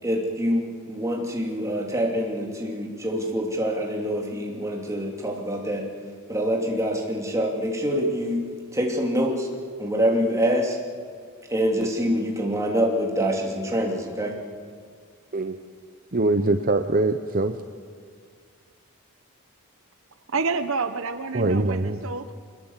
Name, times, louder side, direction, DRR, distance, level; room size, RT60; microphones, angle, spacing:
voice 1, 0.0-5.9 6.3-8.4 8.7-9.5 9.8-10.8 11.5-14.3, equal, 15° right, 0 dB, 2.9 m, -25 dB
voice 2, 16.1-17.6 21.3-22.0, right 2 dB, 40° right, 8 dB, 0.8 m, -23 dB
voice 3, 20.3-22.3, right 4 dB, 65° right, 10 dB, 0.9 m, -28 dB
24.0 x 21.0 x 7.4 m, 2.1 s
head